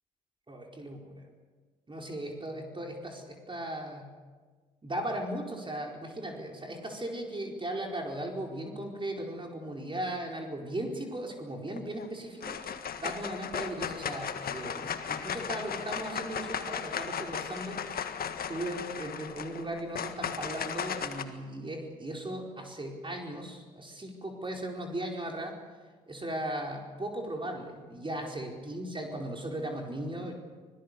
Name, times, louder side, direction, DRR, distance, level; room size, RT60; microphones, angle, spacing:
voice 1, 0.5-1.3 1.9-4.1 4.8-17.8 18.3-25.6 26.1-30.3, right 1 dB, 25° right, 1 dB, 4.8 m, -37 dB
sound 1, 11.7-12.1 12.4-21.2, left 7 dB, 55° left, 1.7 m, -36 dB
25.0 x 18.0 x 6.9 m, 1.4 s
hypercardioid pair, 50°, 19 cm